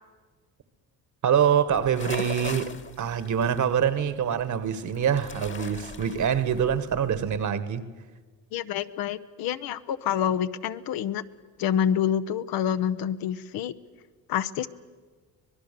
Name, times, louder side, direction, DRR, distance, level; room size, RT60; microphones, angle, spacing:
voice 1, 1.2-7.9, right 8 dB, 50° right, 1.5 m, -25 dB
sound 1, 1.7-7.4, left 4 dB, 30° left, 1.5 m, -40 dB
voice 2, 8.5-11.2 11.6-13.7 14.3-14.7, left 9 dB, 70° left, 1.0 m, -27 dB
24.5 x 20.0 x 6.8 m
supercardioid pair, 80°, 37 cm